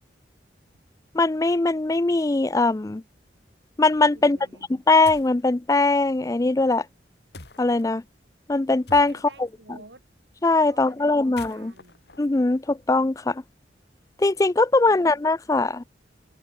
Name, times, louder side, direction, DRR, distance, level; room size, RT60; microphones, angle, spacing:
voice 1, 1.1-3.0 3.8-4.4 4.9-6.9 7.6-8.0 8.5-9.1 10.4-11.7 12.2-13.4 14.2-15.8, left 3 dB, 20° left, 0.4 m, -21 dB
voice 2, 4.1-4.8 9.1-10.1 10.7-12.0 14.8-15.2, right 2 dB, 75° right, 3.2 m, -50 dB
sound 1, 5.0-5.4 7.3-7.9 8.9-9.5 11.2-13.1, left 3 dB, 65° left, 2.5 m, -45 dB
head